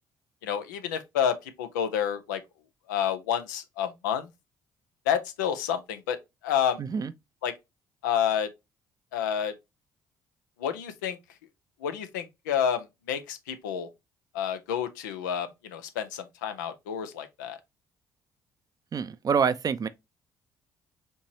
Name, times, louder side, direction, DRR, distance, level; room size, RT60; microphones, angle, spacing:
voice 1, 0.4-2.4 2.9-4.3 5.1-6.2 6.4-6.8 7.4-7.5 8.0-8.5 9.1-9.5 10.6-11.2 11.8-13.9 14.3-17.6, left 9 dB, 85° left, 0.5 m, -29 dB
voice 2, 6.8-7.1 18.9-19.9, right 6 dB, 40° right, 0.5 m, -26 dB
4.4 x 3.0 x 2.8 m
hypercardioid pair, 50°, 10 cm